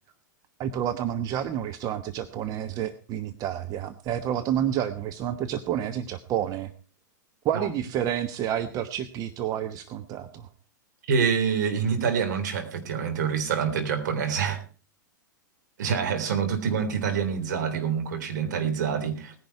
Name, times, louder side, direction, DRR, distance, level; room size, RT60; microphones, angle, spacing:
voice 1, 0.6-6.7 7.4-10.5, right 10 dB, 35° right, 10 dB, 1.1 m, -29 dB
voice 2, 11.1-14.6 15.8-19.3, right 6 dB, 65° right, 7 dB, 3.5 m, -26 dB
18.5 x 10.5 x 4.6 m, 0.35 s
hypercardioid pair, 105°, 10 cm